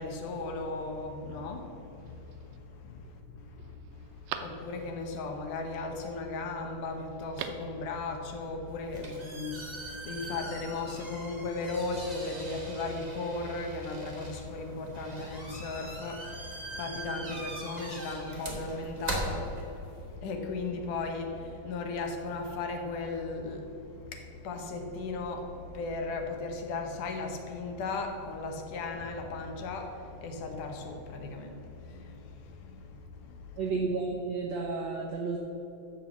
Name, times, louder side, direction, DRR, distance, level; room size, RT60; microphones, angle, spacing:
voice 1, 0.0-33.6, left 3 dB, 70° left, 2.4 m, -37 dB
Telephone, 2.0-2.6 3.1-3.2 3.6-5.1 7.1-7.8 8.0-8.1, right 9 dB, 90° right, 2.5 m, -42 dB
sound 1, 8.7-20.1, right 1 dB, 50° right, 0.4 m, -41 dB
voice 2, 33.6-35.4, right 4 dB, 70° right, 1.7 m, -32 dB
14.0 x 4.8 x 7.1 m
omnidirectional pair, 4.0 m